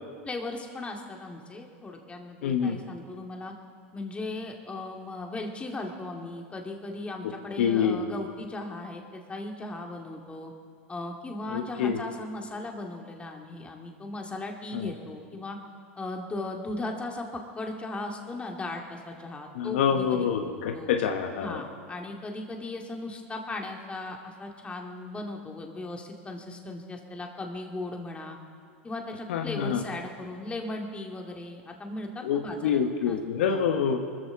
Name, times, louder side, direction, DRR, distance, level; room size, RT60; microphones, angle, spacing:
voice 1, 0.2-3.5 3.9-10.5 10.9-15.6 16.0-20.3 20.7-20.9 21.4-28.4 28.8-33.7, left 2 dB, 20° left, 2 dB, 2.2 m, -37 dB
voice 2, 2.4-2.8 7.6-8.0 11.5-12.0 14.7-14.9 19.5-21.6 29.3-29.8 32.2-34.0, left 7 dB, 70° left, 5 dB, 1.2 m, -26 dB
25.0 x 14.0 x 3.9 m, 2.1 s
hypercardioid pair, 90°, 7 cm